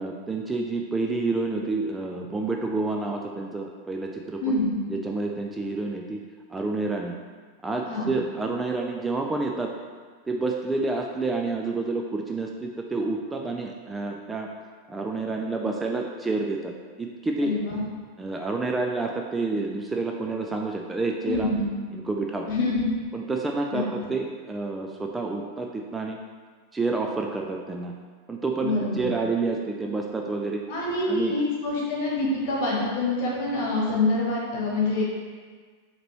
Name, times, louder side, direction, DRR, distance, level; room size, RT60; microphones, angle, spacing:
voice 1, 0.0-4.5 4.9-6.2 6.5-7.1 7.6-9.7 10.3-14.5 14.9-16.7 17.0-17.5 18.2-21.5 21.9-22.5 23.1-26.2 26.7-27.9 28.3-30.6 31.1-31.4, right 3 dB, 10° right, 1 dB, 0.3 m, -29 dB
voice 2, 4.4-4.7 7.9-8.1 17.4-17.8 21.3-21.7 22.5-22.9 23.7-23.8 28.6-29.1 30.7-35.0, left 2 dB, 50° left, -4 dB, 1.2 m, -26 dB
5.0 x 3.0 x 2.9 m, 1.5 s
figure-of-eight pair, 90°, 0 cm